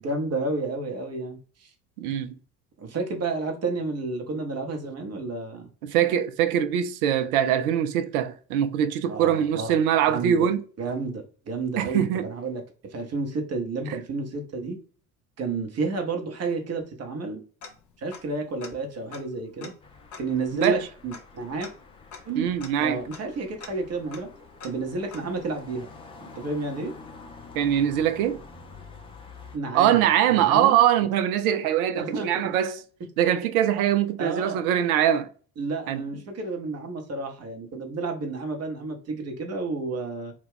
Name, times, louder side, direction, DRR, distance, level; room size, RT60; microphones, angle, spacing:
voice 1, 0.0-1.7 2.8-5.7 9.1-9.8 10.1-10.4 10.8-14.8 15.4-17.4 18.0-19.7 20.2-21.7 22.3-22.5 22.8-24.3 24.6-25.9 26.2-26.9 29.5-30.8 31.9-32.5 34.2-34.6 35.6-40.3, right 3 dB, 35° right, 0.8 m, -31 dB
voice 2, 2.0-2.4 5.8-10.6 11.8-12.3 13.9-14.0 20.5-20.9 22.4-23.0 27.6-28.4 29.7-32.8 33.2-35.3 35.9-36.0, right 10 dB, 70° right, 0.5 m, -23 dB
Tick-tock, 17.6-18.4 18.6-18.7 19.1-25.6, left 5 dB, 40° left, 0.8 m, -46 dB
sound 1, 19.8-29.6, left 4 dB, 15° left, 0.4 m, -47 dB
2.3 x 2.3 x 3.4 m
figure-of-eight pair, 65°, 46 cm